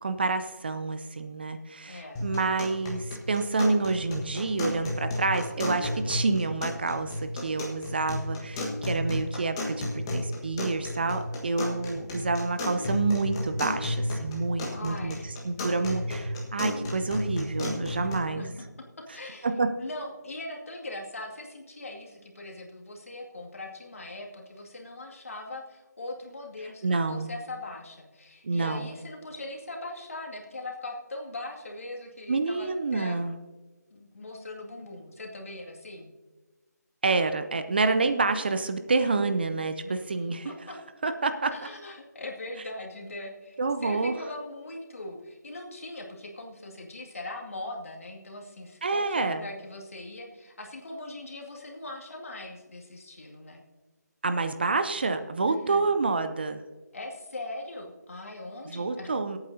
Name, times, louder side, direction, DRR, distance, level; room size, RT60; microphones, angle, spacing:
voice 1, 0.0-15.2 15.4-16.2 16.5-18.4 19.4-19.7 26.8-27.3 28.4-28.9 32.3-33.4 37.0-40.5 41.0-41.5 43.6-44.1 48.8-49.4 54.2-56.6 58.7-59.4, right 3 dB, 35° right, 9 dB, 0.6 m, -28 dB
voice 2, 1.9-2.2 14.7-16.1 18.0-18.7 19.0-19.5 19.8-33.2 33.9-36.1 39.8-40.0 40.4-40.8 41.5-53.6 55.4-55.9 56.9-59.1, left 2 dB, 50° left, 1 dB, 2.2 m, -40 dB
sound 1, 2.2-18.2, left 1 dB, 15° left, 1.4 m, -33 dB
22.5 x 8.8 x 2.7 m, 1.3 s
figure-of-eight pair, 160°, 9 cm